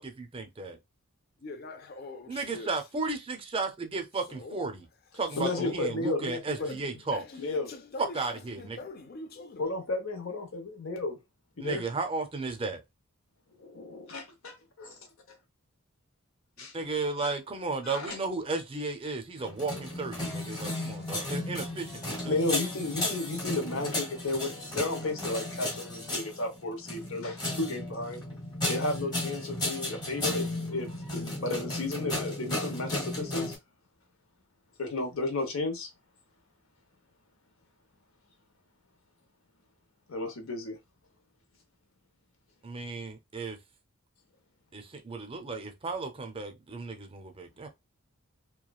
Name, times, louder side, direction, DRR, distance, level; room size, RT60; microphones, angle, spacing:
voice 1, 0.0-0.8 2.3-4.9 5.1-7.2 8.0-8.8 11.6-12.8 16.7-22.4 42.6-43.6 44.7-47.7, right 3 dB, 25° right, 0.5 m, -34 dB
voice 2, 1.4-2.7 4.4-4.6 5.4-5.8 6.6-6.8 7.1-9.7, left 3 dB, 45° left, 0.5 m, -42 dB
voice 3, 5.4-6.7 7.4-7.7 9.6-11.2 11.6-11.8 13.6-15.0 16.6-16.7 17.2-17.3 17.8-18.2 22.3-28.2 28.7-33.6 34.8-35.9 40.1-40.8, left 2 dB, 70° left, 0.9 m, -33 dB
sound 1, 19.4-33.6, left 1 dB, 20° left, 1.1 m, -34 dB
3.0 x 2.3 x 2.3 m
head